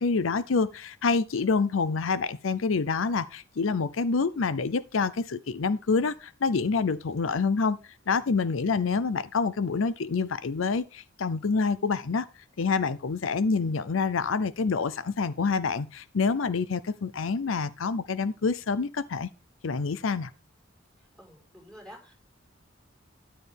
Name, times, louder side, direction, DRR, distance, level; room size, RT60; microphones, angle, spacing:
voice 1, 0.0-7.8 8.1-12.3 12.6-19.3 19.6-20.3, left 4 dB, 80° left, 0.6 m, -27 dB
voice 2, 21.0-22.1, equal, 5° left, 5.1 m, -50 dB
13.5 x 10.0 x 3.5 m
head